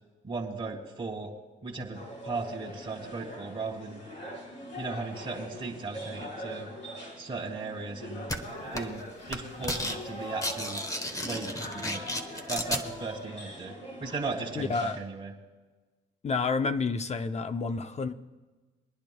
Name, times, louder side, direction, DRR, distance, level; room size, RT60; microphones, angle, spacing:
voice 1, 0.2-1.3 1.6-4.0 4.8-6.7 7.2-8.3 8.7-10.8 11.2-12.0 12.5-13.8 14.0-15.3, right 3 dB, 25° right, -3 dB, 1.8 m, -36 dB
sound 1, 1.9-15.0, equal, 65° left, 4.7 m, -42 dB
sound 2, 8.3-8.4 8.8-9.0 9.3-10.0 10.2-12.8, left 1 dB, 15° left, 1.1 m, -33 dB
voice 2, 14.6-15.0 16.2-18.1, left 4 dB, 35° left, 9 dB, 0.6 m, -29 dB
26.0 x 10.0 x 2.3 m, 1.3 s
cardioid pair, 90°, 20 cm